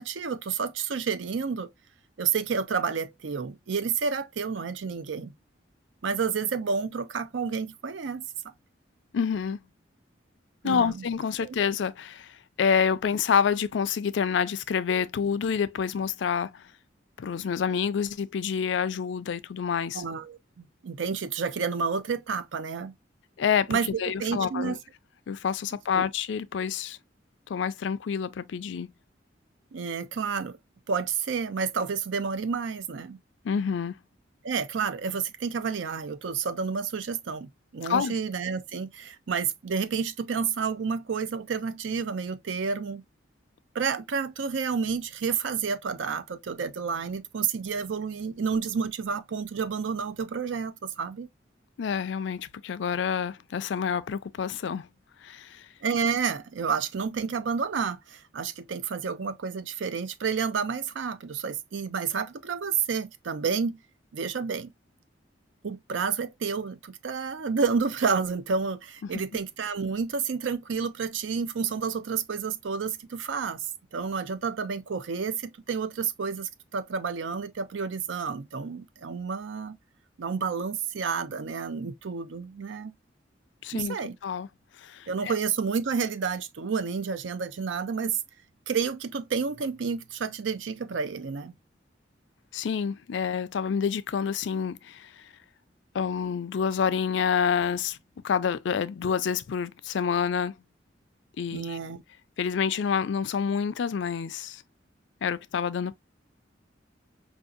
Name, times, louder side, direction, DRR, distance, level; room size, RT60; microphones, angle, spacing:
voice 1, 0.0-1.7 2.2-5.3 6.0-8.2 10.6-11.0 11.4-11.5 19.9-22.9 23.7-23.9 24.2-24.8 25.9-26.1 29.7-30.6 30.9-33.2 34.4-43.0 43.7-51.3 55.8-63.8 64.1-64.7 65.6-79.8 80.2-82.9 83.7-84.1 85.1-88.2 88.7-91.5 101.5-102.0, right 5 dB, 80° right, 0.5 m, -30 dB
voice 2, 9.1-9.6 10.6-16.7 17.2-20.0 23.4-24.8 25.3-27.0 27.5-28.9 33.4-34.0 37.8-38.2 51.8-54.9 55.2-55.7 69.0-69.1 83.6-84.0 84.2-84.5 84.8-85.3 92.5-95.2 95.9-98.0 98.2-100.5 101.4-101.8 102.4-104.6 105.2-105.9, left 7 dB, 75° left, 0.4 m, -28 dB
4.8 x 2.7 x 2.3 m
head